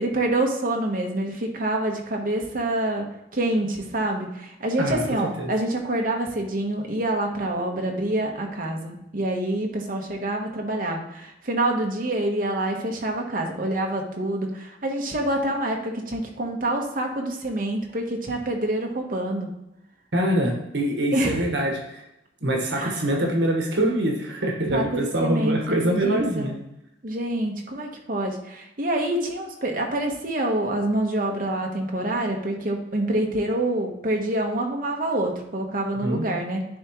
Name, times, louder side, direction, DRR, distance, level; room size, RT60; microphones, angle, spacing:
voice 1, 0.0-3.1 3.3-19.5 21.1-21.4 22.7-23.1 24.7-26.5 27.0-36.7, right 1 dB, 50° right, 1 dB, 1.1 m, -26 dB
voice 2, 20.1-22.0 22.4-26.6 36.0-36.3, right 1 dB, 80° right, 1 dB, 1.3 m, -24 dB
10.5 x 3.6 x 3.0 m, 0.86 s
head